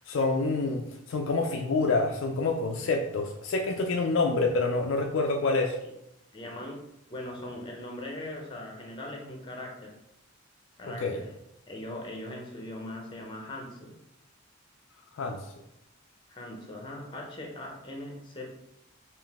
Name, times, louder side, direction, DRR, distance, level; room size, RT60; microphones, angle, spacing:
voice 1, 0.1-0.8 1.1-5.8 10.8-11.2 15.1-15.4, left 3 dB, 60° left, 2 dB, 0.4 m, -27 dB
voice 2, 6.3-6.8 7.1-10.0 10.8-11.3 11.7-14.0 16.3-18.5, left 1 dB, 20° left, 0 dB, 0.7 m, -40 dB
3.7 x 2.5 x 3.5 m, 0.83 s
head